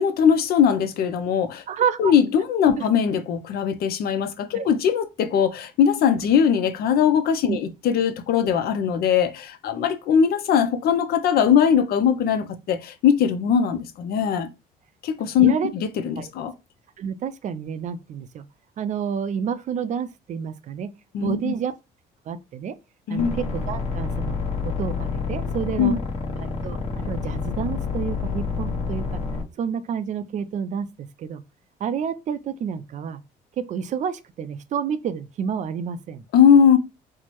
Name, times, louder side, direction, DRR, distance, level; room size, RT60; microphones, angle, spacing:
voice 1, 0.0-1.6 2.0-14.5 15.0-15.5 16.0-16.5 21.1-21.5 23.1-23.4 25.8-26.0 36.3-36.8, left 8 dB, 65° left, 0.5 m, -20 dB
voice 2, 1.7-2.1 2.8-2.9 4.5-4.7 7.5-7.6 15.4-15.7 16.2-16.3 17.0-18.4 18.8-20.9 21.2-21.7 22.3-22.7 23.1-24.4 24.6-26.0 26.4-29.2 29.6-31.4 31.8-33.2 33.6-36.2, right 7 dB, 45° right, 0.4 m, -29 dB
sound 1, 23.2-29.4, left 5 dB, 40° left, 1.0 m, -28 dB
4.4 x 2.1 x 3.0 m
cardioid pair, 110°, 17 cm